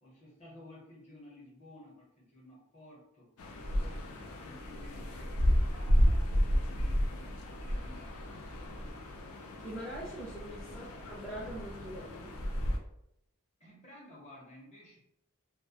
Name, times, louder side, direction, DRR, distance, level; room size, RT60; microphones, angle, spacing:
voice 1, 0.0-3.3 3.8-8.8 10.7-10.8 13.6-15.0, left 1 dB, 35° left, -3 dB, 0.8 m, -54 dB
sound 1, 3.4-12.8, equal, 85° left, 0.4 m, -32 dB
voice 2, 9.4-12.4, right 1 dB, 5° left, -7 dB, 0.4 m, -43 dB
2.2 x 2.1 x 2.7 m, 0.77 s
head